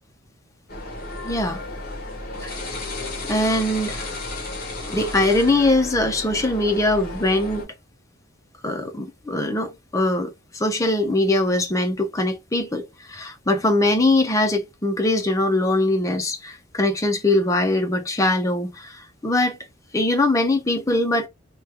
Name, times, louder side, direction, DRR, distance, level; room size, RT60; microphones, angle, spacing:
sound 1, 0.7-7.6, left 2 dB, 45° left, 1.4 m, -33 dB
voice 1, 1.2-1.6 2.4-2.5 3.3-4.1 4.9-7.7 8.6-19.6 19.9-21.3, left 2 dB, 15° left, 0.5 m, -22 dB
2.9 x 2.3 x 3.4 m
head